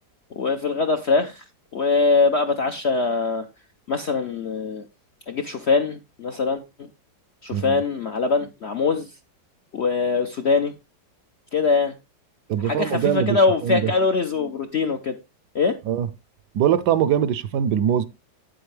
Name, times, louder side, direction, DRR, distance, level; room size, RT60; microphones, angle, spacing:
voice 1, 0.4-1.4 1.7-3.4 3.9-4.9 5.3-6.9 7.4-9.1 9.7-10.7 11.5-11.9 12.6-15.1 15.5-15.8, left 4 dB, 55° left, 0.7 m, -22 dB
voice 2, 12.5-13.9 15.9-16.1 16.5-18.0, right 9 dB, 70° right, 1.2 m, -22 dB
9.1 x 7.9 x 3.3 m
omnidirectional pair, 2.0 m